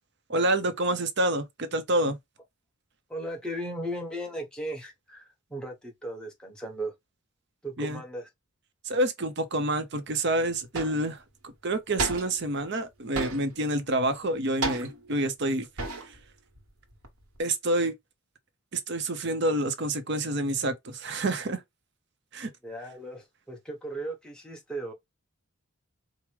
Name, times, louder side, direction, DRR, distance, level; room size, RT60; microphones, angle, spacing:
voice 1, 0.3-2.2 7.8-8.0 8.8-16.2 17.4-17.9 18.7-21.6 22.3-22.5, right 1 dB, 50° right, 0.7 m, -28 dB
voice 2, 3.1-6.9 7.6-8.3 22.6-24.9, right 1 dB, 5° left, 1.1 m, -36 dB
sound 1, 10.1-10.2 10.7-11.1 12.0-12.5 13.1-13.7 14.6-15.2 15.8-16.3 16.5-17.4, right 3 dB, 85° right, 1.2 m, -33 dB
4.7 x 2.1 x 3.2 m
head